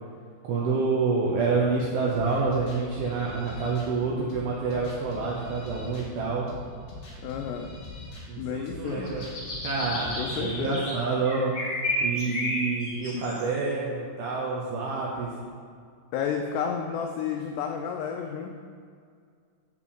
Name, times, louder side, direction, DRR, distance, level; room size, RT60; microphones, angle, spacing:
voice 1, 0.4-6.5 8.3-9.2 9.6-11.5 12.0-15.3, right 4 dB, 75° right, -4 dB, 2.2 m, -28 dB
sound 1, 2.1-10.7, left 2 dB, 60° left, 1.6 m, -43 dB
voice 2, 7.2-7.7 8.4-9.1 10.2-10.8 13.1-13.2 16.1-18.6, left 7 dB, 90° left, 3 dB, 2.4 m, -31 dB
sound 2, 8.9-10.9 11.2-13.6, left 1 dB, 45° left, 1.5 m, -32 dB
7.4 x 4.9 x 6.8 m, 2.1 s
omnidirectional pair, 5.5 m